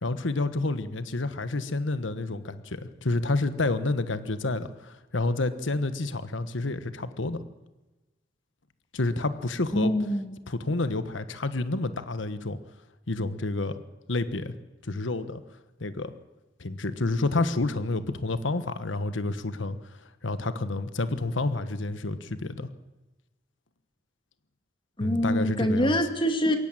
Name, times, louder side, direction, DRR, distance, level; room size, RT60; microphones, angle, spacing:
voice 1, 0.0-7.4 8.9-9.9 10.5-12.6 13.1-13.8 14.1-14.5 14.8-15.4 15.8-16.1 16.6-19.9 20.2-22.7 25.0-25.9, left 2 dB, 80° left, 12 dB, 1.2 m, -29 dB
voice 2, 9.7-10.3 25.0-26.6, equal, 25° left, 6 dB, 2.4 m, -25 dB
22.0 x 17.5 x 9.0 m, 1.1 s
head